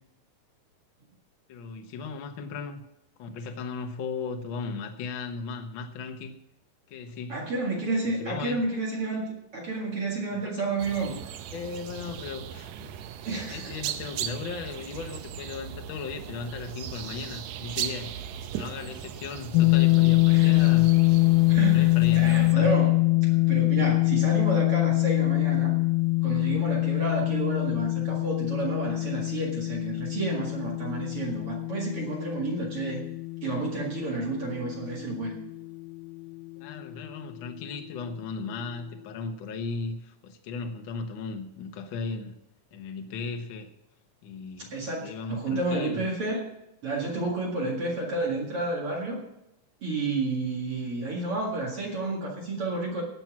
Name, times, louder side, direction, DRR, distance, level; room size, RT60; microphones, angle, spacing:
voice 1, 1.5-2.8 3.2-6.3 6.9-7.5 8.0-8.6 10.6-10.8 11.5-12.9 13.5-20.9 21.4-22.7 36.6-42.3 42.7-43.7 44.2-46.1, left 4 dB, 65° left, 5 dB, 1.2 m, -36 dB
voice 2, 7.3-11.2 13.2-13.7 20.3-20.6 21.5-22.9 23.2-25.7 26.2-33.0 33.4-35.4 44.7-46.4 46.8-49.2 49.8-53.0, right 3 dB, 45° right, -2 dB, 2.6 m, -30 dB
sound 1, 10.8-22.6, right 10 dB, 75° right, 1.8 m, -38 dB
sound 2, 19.5-35.5, left 23 dB, 80° left, 2.1 m, -24 dB
18.0 x 6.1 x 6.0 m, 0.83 s
omnidirectional pair, 3.8 m